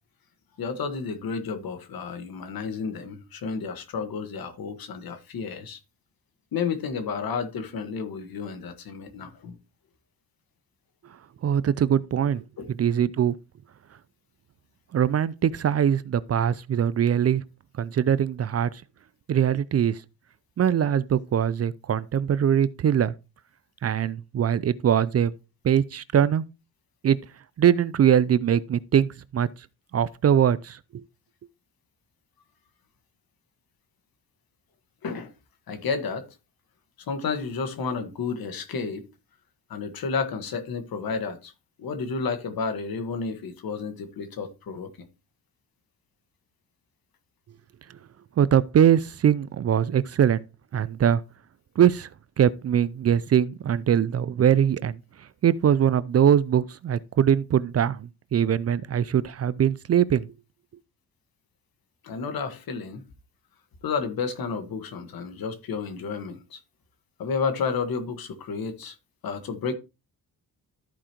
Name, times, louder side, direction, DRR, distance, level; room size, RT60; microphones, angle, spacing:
voice 1, 0.6-5.8 6.5-9.6 12.6-12.7 35.0-35.3 35.7-36.3 37.0-39.1 39.7-41.5 41.8-44.9 62.0-63.0 63.8-66.6 67.2-69.0 69.2-69.7, left 5 dB, 70° left, 1.5 m, -31 dB
voice 2, 11.4-12.4 12.8-13.3 14.9-17.4 17.8-18.7 19.3-20.0 20.6-23.1 23.8-25.3 25.6-26.4 27.0-27.2 27.6-29.5 29.9-30.8 48.4-50.4 50.7-51.2 51.8-52.1 52.4-55.0 55.4-60.3, right 9 dB, 40° right, 0.5 m, -22 dB
13.5 x 4.9 x 3.0 m
cardioid pair, 100°, 37 cm